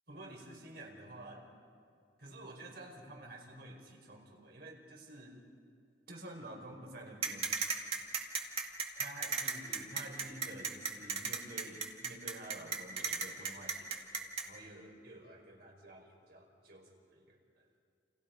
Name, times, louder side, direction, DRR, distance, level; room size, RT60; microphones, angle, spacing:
voice 1, 0.1-1.5 2.2-5.4 6.1-7.6 8.9-17.4, right 1 dB, 60° right, 0 dB, 5.0 m, -50 dB
sound 1, 7.2-14.4, right 5 dB, 35° right, 2.2 m, -35 dB
29.5 x 28.5 x 5.3 m, 2.4 s
head